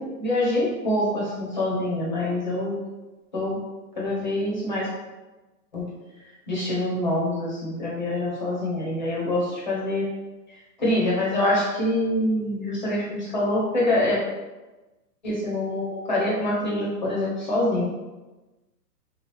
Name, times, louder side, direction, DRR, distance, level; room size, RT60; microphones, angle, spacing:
voice 1, 0.0-2.8 3.3-3.6 4.0-4.9 5.7-5.8 6.5-10.1 10.8-14.2 15.2-17.8, left 1 dB, 30° left, -5 dB, 0.7 m, -25 dB
3.0 x 2.3 x 3.3 m, 1.1 s
hypercardioid pair, 175°, 49 cm